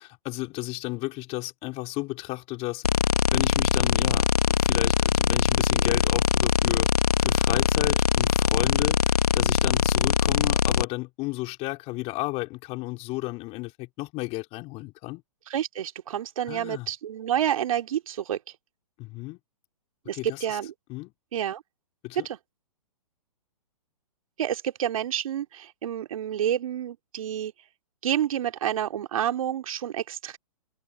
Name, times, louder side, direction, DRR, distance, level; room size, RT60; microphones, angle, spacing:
voice 1, 0.0-2.8 3.3-6.9 7.2-15.2 16.5-16.9 19.0-19.4 20.1-20.6 20.9-21.1 22.0-22.3, left 22 dB, 35° left, 4.3 m, -33 dB
sound 1, 2.8-10.8, left 6 dB, 85° left, 1.3 m, -22 dB
voice 2, 15.5-18.4 20.1-20.7 21.3-21.6 22.2-22.4 24.4-27.5 28.0-30.4, right 10 dB, 65° right, 2.7 m, -29 dB
hypercardioid pair, 125°, 19 cm